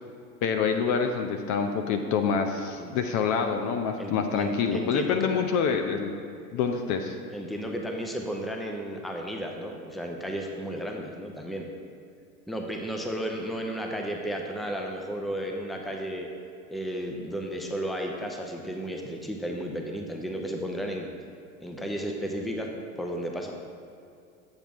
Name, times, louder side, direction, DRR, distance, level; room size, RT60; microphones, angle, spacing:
voice 1, 0.4-6.1 6.5-7.2, left 6 dB, 40° left, 5 dB, 0.7 m, -26 dB
voice 2, 4.0-5.3 7.3-11.7 12.5-16.3 16.7-21.1 21.6-22.7 23.0-23.5, equal, ahead, 2 dB, 0.7 m, -33 dB
8.8 x 7.1 x 3.5 m, 2.5 s
figure-of-eight pair, 80°, 44 cm